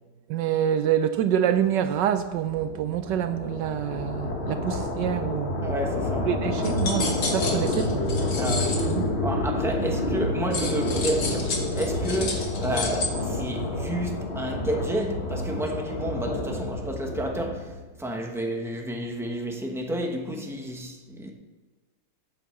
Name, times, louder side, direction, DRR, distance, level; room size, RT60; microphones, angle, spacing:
voice 1, 0.3-5.7 6.2-8.0 8.5-9.1, right 10 dB, 75° right, 1.0 m, -27 dB
sound 1, 1.6-17.9, left 2 dB, 35° left, 1.2 m, -29 dB
voice 2, 5.6-6.3 8.4-8.8 9.2-17.7 18.0-21.3, right 1 dB, 5° right, 0.4 m, -30 dB
sound 2, 6.6-8.9 10.5-13.1, left 4 dB, 70° left, 2.3 m, -31 dB
9.3 x 8.0 x 7.0 m
omnidirectional pair, 2.3 m